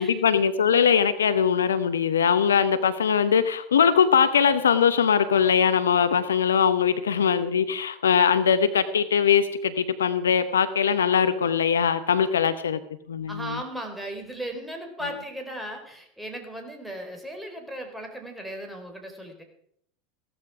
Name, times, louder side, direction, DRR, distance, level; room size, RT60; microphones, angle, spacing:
voice 1, 0.0-12.8 13.1-13.6, left 7 dB, 80° left, 13 dB, 0.9 m, -21 dB
voice 2, 13.3-19.4, right 1 dB, 5° right, 3 dB, 4.4 m, -36 dB
16.0 x 13.0 x 4.9 m, 0.66 s
hypercardioid pair, 85°, 0 cm